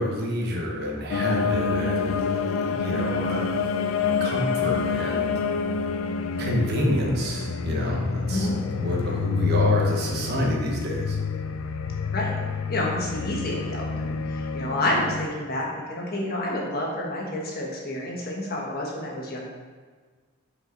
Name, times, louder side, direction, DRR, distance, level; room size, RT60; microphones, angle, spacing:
voice 1, 0.0-3.6 4.0-5.3 6.4-8.5 8.8-11.2, equal, 50° right, -1 dB, 1.2 m, -28 dB
sound 1, 1.1-15.3, left 5 dB, 75° left, 0.4 m, -27 dB
voice 2, 12.7-19.5, left 1 dB, 50° left, -3 dB, 1.3 m, -29 dB
6.1 x 5.0 x 3.9 m, 1.5 s
head